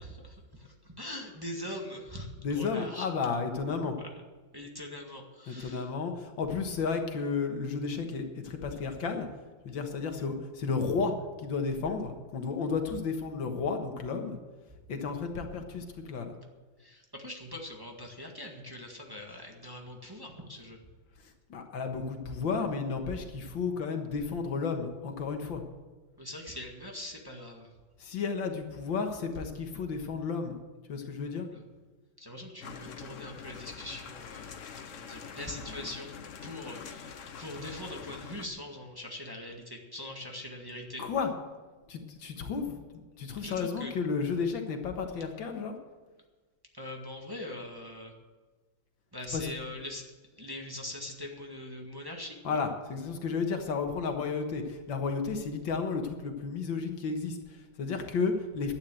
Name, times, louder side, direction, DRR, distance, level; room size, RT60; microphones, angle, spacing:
voice 1, 0.0-3.1 4.5-5.9 16.8-20.8 26.2-27.7 31.5-31.6 32.2-34.5 34.9-36.1 36.4-41.0 43.4-43.9 46.7-48.1 49.1-50.0 50.4-52.6, left 1 dB, 10° right, 0 dB, 1.6 m, -42 dB
voice 2, 2.4-4.0 5.5-9.3 9.6-11.1 11.4-14.4 14.9-16.4 21.5-25.6 28.0-30.6 30.9-31.5 41.0-41.3 41.9-42.8 43.2-45.8 49.3-49.5 52.4-58.7, left 5 dB, 80° left, 5 dB, 2.1 m, -32 dB
sound 1, 32.6-38.5, left 6 dB, 50° left, 1.0 m, -44 dB
12.0 x 9.6 x 7.7 m, 1.3 s
omnidirectional pair, 2.1 m